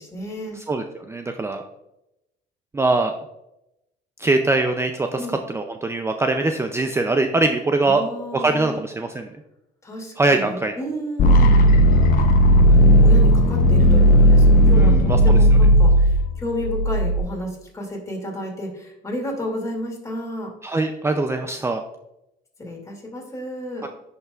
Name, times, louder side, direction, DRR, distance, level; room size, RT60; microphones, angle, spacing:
voice 1, 0.0-0.6 5.2-5.4 7.8-8.8 9.8-11.6 12.6-20.5 22.6-23.8, left 1 dB, 20° left, -1 dB, 2.6 m, -31 dB
voice 2, 0.7-1.6 2.7-3.1 4.2-8.0 8.3-9.3 10.2-10.7 14.8-15.2 20.6-21.8 23.8-23.9, right 2 dB, 15° right, 5 dB, 0.5 m, -22 dB
sound 1, 11.2-17.2, equal, 55° left, 0.8 m, -14 dB
10.5 x 5.6 x 2.4 m, 0.86 s
cardioid pair, 110°, 17 cm